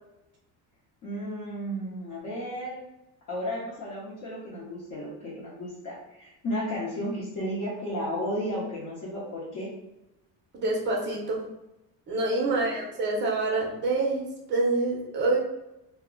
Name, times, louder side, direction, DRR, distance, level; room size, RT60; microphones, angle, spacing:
voice 1, 1.0-2.8 3.3-9.7 12.4-12.7, equal, 45° left, -8 dB, 0.7 m, -33 dB
voice 2, 10.5-11.4 12.1-15.4, right 2 dB, 30° right, -2 dB, 0.5 m, -26 dB
2.1 x 2.0 x 3.6 m, 0.91 s
cardioid pair, 175°, 41 cm